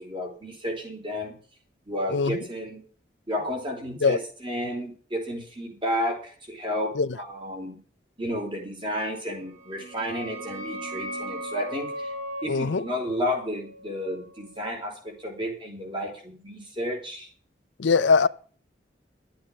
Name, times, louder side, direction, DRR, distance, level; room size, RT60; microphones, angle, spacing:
voice 1, 0.0-1.4 1.9-2.8 3.3-7.8 8.2-12.1 12.4-17.3, equal, 25° right, 4.4 m, -32 dB
sound 1, 9.4-14.9, equal, 45° right, 3.9 m, -38 dB
voice 2, 12.5-12.8 17.8-18.3, left 5 dB, 85° left, 0.6 m, -21 dB
12.5 x 8.6 x 7.3 m
head